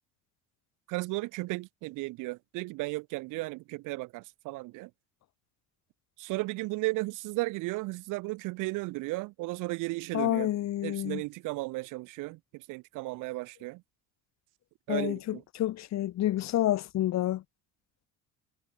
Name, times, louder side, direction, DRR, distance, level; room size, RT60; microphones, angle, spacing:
voice 1, 0.9-4.9 6.2-10.5 10.8-13.8 14.9-15.4, right 22 dB, 85° right, 5.7 m, -35 dB
voice 2, 10.1-11.2 14.9-17.4, left 13 dB, 60° left, 6.2 m, -29 dB
cardioid pair, 130°, 30 cm